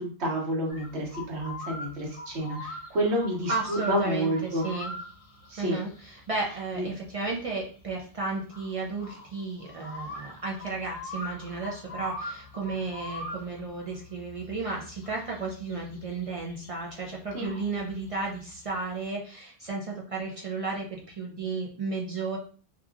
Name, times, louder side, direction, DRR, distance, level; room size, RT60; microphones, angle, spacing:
voice 1, 0.0-4.6 5.5-5.8 6.7-6.9 17.3-17.5, right 1 dB, 75° right, -2 dB, 1.2 m, -29 dB
sound 1, 0.7-19.1, left 2 dB, 50° left, 0.4 m, -43 dB
voice 2, 3.5-4.9 5.6-22.4, right 3 dB, 55° right, -2 dB, 0.4 m, -33 dB
2.8 x 2.4 x 2.3 m, 0.42 s
omnidirectional pair, 1.1 m